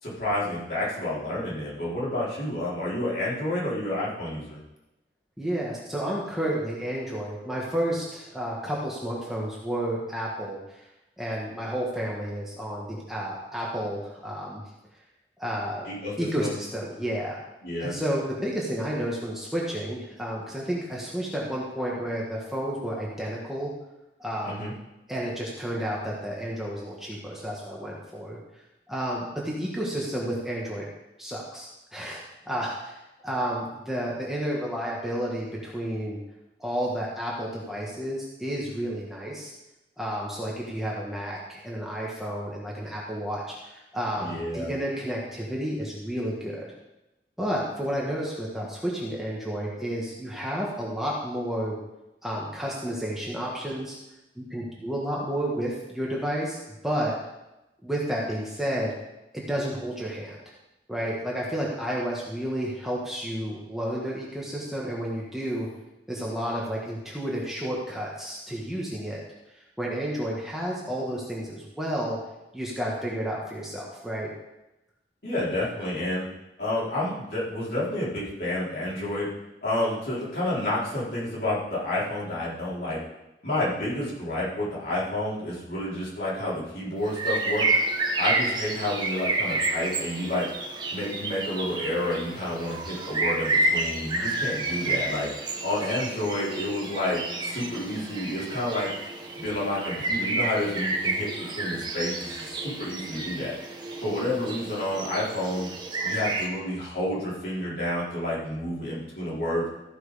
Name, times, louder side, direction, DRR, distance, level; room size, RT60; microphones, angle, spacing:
voice 1, 0.0-4.6 15.8-16.5 17.6-17.9 24.4-24.7 44.2-44.7 75.2-76.2 76.6-79.3 79.6-83.0 83.4-87.7 88.2-90.5 90.9-95.3 95.6-98.9 99.4-101.3 101.5-103.5 104.0-105.7 106.0-109.7, left 1 dB, 60° left, -8 dB, 4.4 m, -29 dB
voice 2, 5.4-10.8 11.2-14.6 15.4-15.9 16.2-17.4 17.8-23.7 24.2-24.7 25.1-28.4 28.9-30.9 31.2-33.0 33.2-36.2 36.6-39.5 40.0-46.7 47.4-51.8 52.2-54.0 54.4-56.6 56.8-57.2 57.8-58.9 59.3-60.4 60.9-65.7 66.1-69.2 69.8-72.2 72.5-74.3, equal, ahead, -5 dB, 1.6 m, -31 dB
sound 1, 87.1-106.5, right 2 dB, 25° right, 1.2 m, -30 dB
14.5 x 6.1 x 5.1 m, 0.95 s
head